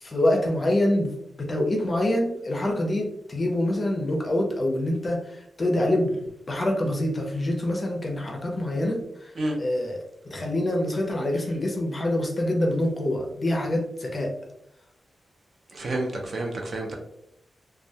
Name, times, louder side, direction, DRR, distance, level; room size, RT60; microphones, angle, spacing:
voice 1, 0.0-1.1 1.4-9.0 9.6-10.0 10.3-14.3, left 1 dB, 25° left, 1 dB, 0.5 m, -25 dB
voice 2, 15.7-17.0, right 1 dB, 45° right, 1 dB, 0.5 m, -29 dB
2.2 x 2.2 x 2.7 m, 0.79 s
wide cardioid pair, 155°, 0 cm